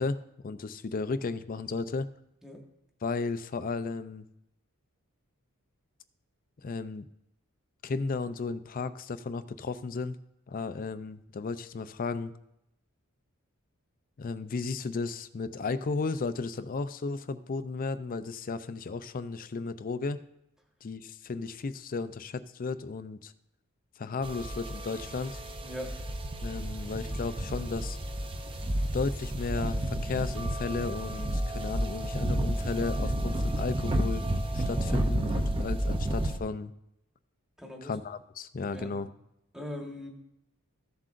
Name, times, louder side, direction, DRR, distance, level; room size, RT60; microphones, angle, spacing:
voice 1, 0.0-2.1 3.0-4.2 6.6-7.1 7.8-10.2 10.5-12.3 14.2-20.2 20.8-23.3 24.0-25.4 26.4-28.0 28.9-34.2 34.5-36.7 37.8-39.1, left 4 dB, 40° left, 13 dB, 0.4 m, -34 dB
sound 1, 24.2-36.4, right 1 dB, 25° right, 0.6 m, -31 dB
voice 2, 25.6-26.0 37.6-37.9 38.7-39.0 39.5-40.1, left 1 dB, 5° right, 1 dB, 1.3 m, -40 dB
14.5 x 7.5 x 2.5 m, 0.81 s
head